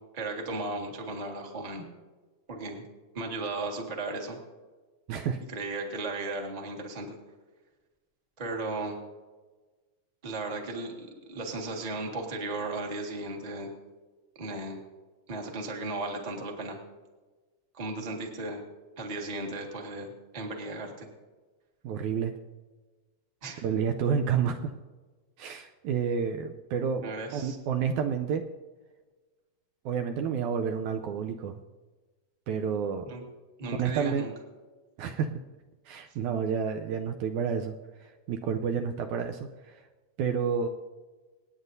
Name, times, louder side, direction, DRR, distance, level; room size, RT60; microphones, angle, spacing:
voice 1, 0.1-1.9 2.5-2.8 3.1-4.4 5.5-7.1 8.4-9.0 10.2-13.7 14.4-14.8 15.3-16.8 17.7-18.6 19.0-21.1 23.4-23.6 27.0-27.6 33.1-33.2 33.6-34.3, right 2 dB, 20° right, 0 dB, 1.0 m, -35 dB
voice 2, 5.1-5.4 21.8-22.3 23.6-24.7 25.4-27.0 27.3-28.4 29.9-31.6 32.5-33.1 33.8-34.3 35.0-35.3 35.9-37.8 38.3-39.8 40.2-40.7, right 7 dB, 75° right, 5 dB, 1.9 m, -29 dB
27.5 x 9.3 x 2.7 m, 1.3 s
omnidirectional pair, 3.7 m